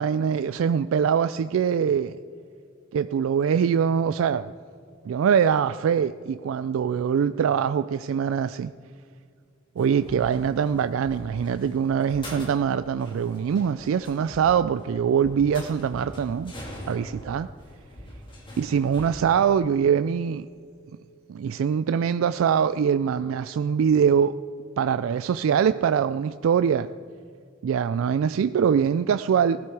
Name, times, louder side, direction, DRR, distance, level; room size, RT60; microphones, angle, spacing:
voice 1, 0.0-2.2 2.9-4.5 5.0-8.7 9.8-16.5 16.9-17.5 18.6-20.5 21.3-24.4 24.8-26.9 27.6-29.6, right 7 dB, 90° right, 12 dB, 0.3 m, -23 dB
sound 1, 9.8-19.1, equal, 25° left, 2.6 m, -43 dB
17.0 x 12.0 x 4.7 m, 2.2 s
head